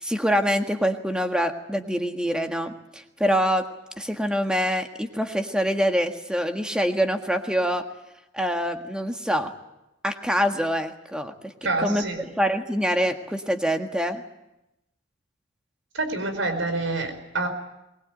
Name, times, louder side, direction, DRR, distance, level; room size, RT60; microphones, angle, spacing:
voice 1, 0.0-3.6 4.0-7.8 8.3-9.5 10.0-11.5 11.8-14.2, equal, 5° right, 5 dB, 1.7 m, -25 dB
voice 2, 11.6-12.3 15.9-17.5, right 3 dB, 75° right, 7 dB, 4.9 m, -27 dB
23.0 x 20.5 x 9.1 m, 0.93 s
head